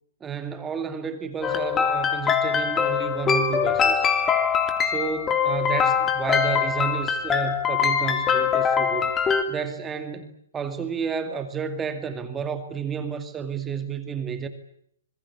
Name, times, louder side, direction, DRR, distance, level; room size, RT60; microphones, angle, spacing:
voice 1, 0.2-4.1 4.8-9.1 9.5-14.5, right 6 dB, 15° right, 9 dB, 2.3 m, -31 dB
sound 1, 1.4-9.4, left 7 dB, 15° left, 3.2 m, -23 dB
26.5 x 21.5 x 8.5 m, 0.67 s
hypercardioid pair, 135°, 0 cm